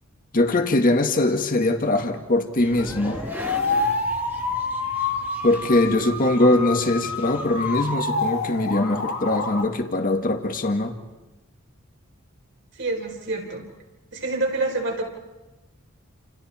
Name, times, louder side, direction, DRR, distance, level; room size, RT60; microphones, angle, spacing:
voice 1, 0.3-3.2 5.4-10.9, left 2 dB, 45° left, 5 dB, 1.9 m, -21 dB
sound 1, 2.6-7.9, right 1 dB, 10° right, 1.6 m, -40 dB
sound 2, 2.8-9.6, left 3 dB, 70° left, 1.9 m, -28 dB
voice 2, 12.7-13.6 14.1-15.0, right 2 dB, 60° right, 1 dB, 4.8 m, -27 dB
29.0 x 28.0 x 4.4 m, 1.1 s
head